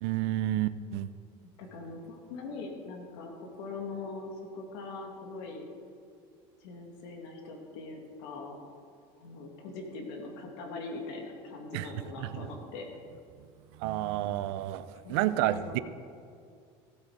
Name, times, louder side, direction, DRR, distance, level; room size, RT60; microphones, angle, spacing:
voice 1, 0.0-1.1 11.7-12.5 13.7-15.8, right 14 dB, 85° right, 0.6 m, -30 dB
voice 2, 1.6-5.7 6.6-8.6 9.2-12.9 15.0-15.8, left 3 dB, 85° left, 2.3 m, -41 dB
16.5 x 8.4 x 5.0 m
cardioid pair, 140°, 13 cm